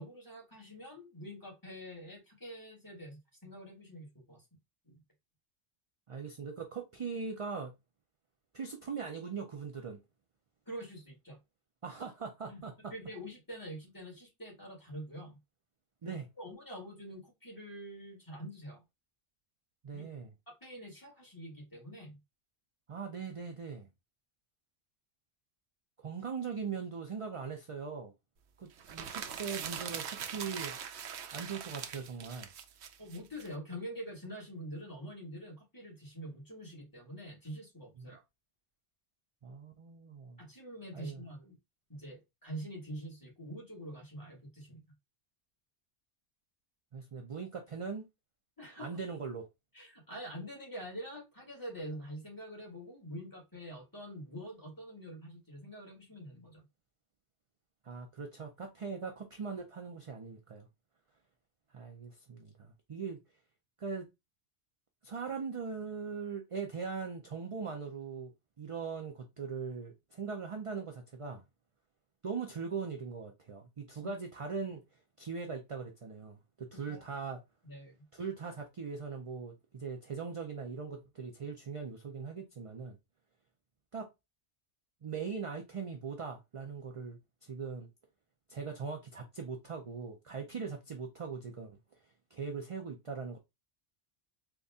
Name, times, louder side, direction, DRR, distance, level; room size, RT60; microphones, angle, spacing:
voice 1, 0.0-4.4 4.8-5.0 10.7-11.4 12.5-12.6 12.9-15.4 16.0-18.8 19.9-20.1 20.5-22.2 33.0-38.2 40.4-41.6 41.9-44.8 48.6-48.9 49.7-56.6 74.0-74.1 76.9-77.0 77.6-78.0, equal, 15° left, 2.0 m, -45 dB
voice 2, 6.1-7.7 8.5-10.0 11.8-12.9 16.0-16.3 19.8-20.3 22.9-23.9 26.0-28.1 28.6-30.7 31.3-32.5 38.0-38.1 39.4-40.4 40.9-41.2 46.9-48.0 48.8-49.4 57.8-60.7 61.7-63.2 63.8-64.1 65.0-68.3 68.6-71.4 72.2-74.8 75.2-77.4 78.1-83.0 83.9-84.1 85.0-87.9 88.5-91.8 92.3-93.4, right 5 dB, 40° right, 0.5 m, -40 dB
sound 1, 28.8-33.5, right 8 dB, 80° right, 0.9 m, -41 dB
4.0 x 2.4 x 3.5 m
omnidirectional pair, 1.1 m